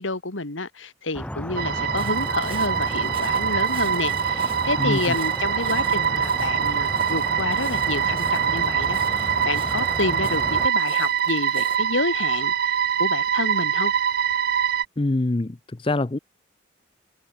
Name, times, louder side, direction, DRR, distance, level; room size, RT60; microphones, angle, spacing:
voice 1, 0.0-13.9, left 3 dB, 80° left, 2.4 m, -29 dB
sound 1, 1.1-10.7, left 1 dB, 5° left, 1.1 m, -33 dB
sound 2, 1.6-14.8, right 8 dB, 50° right, 0.4 m, -24 dB
Walk footsteps, 2.0-11.8, right 4 dB, 30° right, 4.2 m, -44 dB
voice 2, 15.0-15.6 15.8-16.2, left 2 dB, 25° left, 0.6 m, -23 dB
head